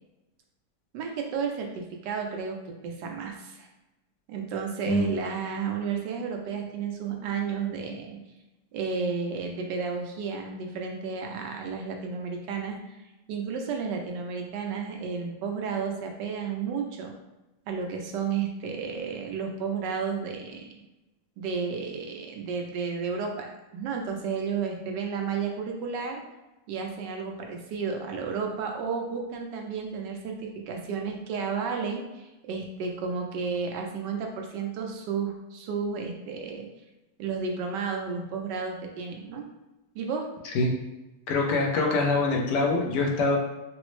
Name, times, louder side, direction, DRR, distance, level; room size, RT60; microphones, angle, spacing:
voice 1, 0.9-3.7 4.3-8.2 8.7-12.8 13.3-17.1 17.7-20.8 21.4-26.2 26.7-36.7 37.2-39.5 39.9-40.3, right 5 dB, 90° right, 2 dB, 1.3 m, -32 dB
voice 2, 41.3-43.4, left 3 dB, 80° left, 1 dB, 1.3 m, -24 dB
4.1 x 2.0 x 3.1 m, 1.0 s
omnidirectional pair, 1.8 m